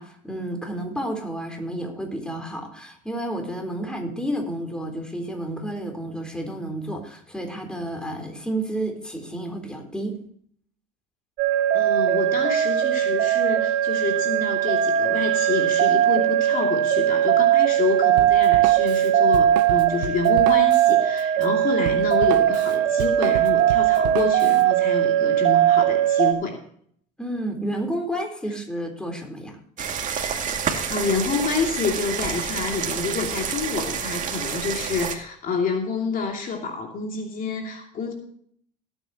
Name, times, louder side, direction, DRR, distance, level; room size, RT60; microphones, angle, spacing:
voice 1, 0.0-10.1 27.2-29.6, right 1 dB, 5° left, 3 dB, 3.9 m, -31 dB
sound 1, 11.4-26.3, right 11 dB, 55° right, 2.9 m, -20 dB
voice 2, 11.7-26.6 30.7-38.1, left 4 dB, 40° left, 2 dB, 2.7 m, -28 dB
Drum kit, 18.2-24.6, right 12 dB, 85° right, 0.9 m, -33 dB
sound 2, 29.8-35.1, right 7 dB, 40° right, 2.3 m, -29 dB
18.0 x 9.2 x 3.0 m, 0.62 s
supercardioid pair, 95°, 21 cm